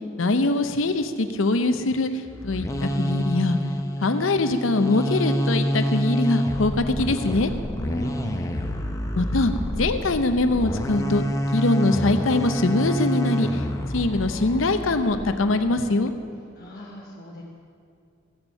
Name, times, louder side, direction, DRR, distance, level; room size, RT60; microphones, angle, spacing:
voice 1, 0.2-3.6 4.0-7.5 9.1-11.2 11.5-13.6 13.9-16.1, left 2 dB, 85° left, 9 dB, 0.7 m, -23 dB
sound 1, 2.3-15.4, equal, 15° left, 0.6 m, -28 dB
voice 2, 7.7-8.7 16.5-17.4, left 1 dB, 50° left, -4 dB, 1.3 m, -36 dB
15.5 x 7.0 x 5.7 m, 2.5 s
head